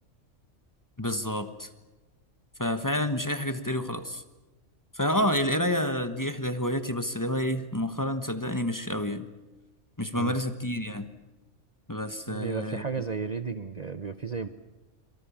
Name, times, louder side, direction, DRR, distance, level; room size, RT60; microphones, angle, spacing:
voice 1, 1.0-1.7 2.6-4.2 4.9-9.3 10.0-11.1 11.9-12.8, left 1 dB, 15° left, 9 dB, 1.3 m, -29 dB
voice 2, 12.3-14.5, right 5 dB, 35° right, 10 dB, 0.9 m, -33 dB
26.0 x 24.0 x 7.3 m, 1.2 s
omnidirectional pair, 1.2 m